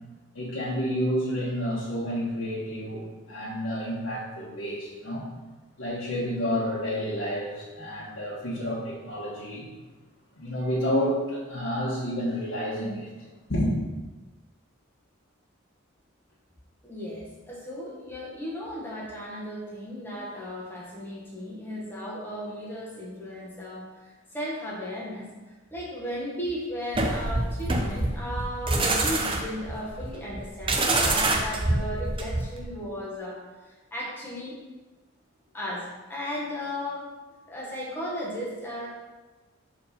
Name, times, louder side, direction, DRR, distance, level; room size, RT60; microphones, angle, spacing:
voice 1, 0.3-5.3 5.8-9.7 10.4-13.1 13.5-13.7, equal, 80° left, -9 dB, 1.5 m, -30 dB
voice 2, 16.8-25.3 25.7-34.6 35.5-37.1 37.5-38.9, equal, 10° left, -5 dB, 1.3 m, -35 dB
sound 1, 26.9-32.6, right 2 dB, 25° right, 0.5 m, -26 dB
4.5 x 3.8 x 5.5 m, 1.2 s
head